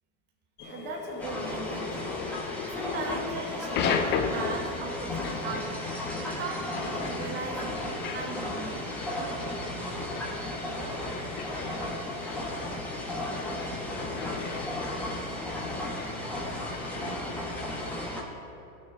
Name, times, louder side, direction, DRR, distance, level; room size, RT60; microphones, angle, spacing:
sound 1, 0.6-18.1, left 6 dB, 25° left, 0.5 m, -37 dB
voice 1, 0.7-2.1 2.7-8.9, right 3 dB, 25° right, -1 dB, 1.2 m, -39 dB
sound 2, 1.2-18.2, left 1 dB, 5° left, 1.3 m, -35 dB
sound 3, 7.4-14.7, left 4 dB, 60° left, 1.7 m, -47 dB
voice 2, 10.8-14.4 15.1-18.3, left 4 dB, 80° left, -5 dB, 2.5 m, -51 dB
17.0 x 6.5 x 3.4 m, 2.6 s
supercardioid pair, 135°, 43 cm